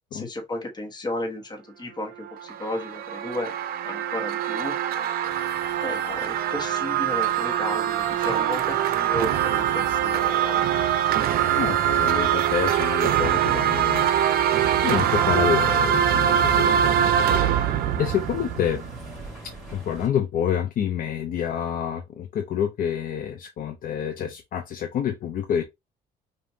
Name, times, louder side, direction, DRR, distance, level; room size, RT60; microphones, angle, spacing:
voice 1, 0.1-3.5 3.8-4.7 5.8-10.7, left 1 dB, 25° left, 1.3 m, -33 dB
sound 1, 2.2-19.2, right 9 dB, 65° right, 0.6 m, -23 dB
sound 2, 5.2-20.1, right 1 dB, ahead, 2.6 m, -46 dB
voice 2, 11.6-14.1 14.8-16.7 18.0-18.8 19.7-25.6, left 9 dB, 55° left, 0.6 m, -27 dB
5.1 x 2.6 x 2.7 m
cardioid pair, 110°, 17 cm